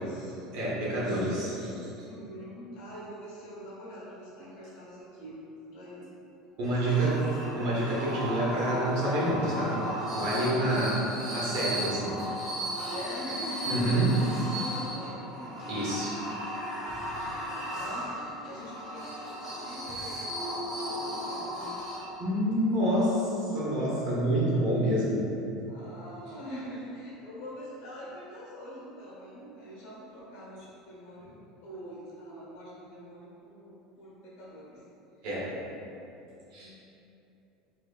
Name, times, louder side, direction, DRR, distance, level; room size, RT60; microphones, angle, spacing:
voice 1, 0.0-0.4 2.0-5.4 5.7-6.1 6.6-7.2 10.6-10.9 12.8-15.7 17.0-21.8 25.7-34.8 36.6-36.8, equal, 65° left, -7 dB, 1.2 m, -44 dB
voice 2, 0.5-1.8 6.6-7.2 7.5-9.8 10.1-11.0 11.3-12.2 13.7-14.1 15.7-16.2 17.2-17.3 22.2-25.2 35.2-35.5 36.5-36.7, right 1 dB, 60° right, -6 dB, 0.9 m, -28 dB
sound 1, 6.6-22.4, equal, 20° right, 1.3 m, -36 dB
sound 2, 13.7-16.1 16.4-19.5 19.9-20.3, equal, 30° left, 0.4 m, -49 dB
3.4 x 2.8 x 2.4 m, 2.8 s
cardioid pair, 160°, 0 cm